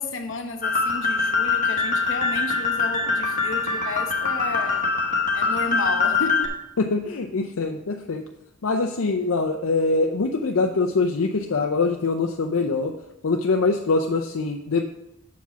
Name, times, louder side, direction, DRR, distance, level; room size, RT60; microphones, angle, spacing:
voice 1, 0.0-4.8 5.3-6.5, left 3 dB, 70° left, 5 dB, 1.0 m, -32 dB
sound 1, 0.6-6.5, left 4 dB, 40° left, 1.1 m, -23 dB
voice 2, 6.8-8.3 8.6-12.9 13.2-15.0, left 3 dB, 85° left, 3 dB, 0.5 m, -23 dB
7.0 x 4.8 x 5.7 m, 0.85 s
head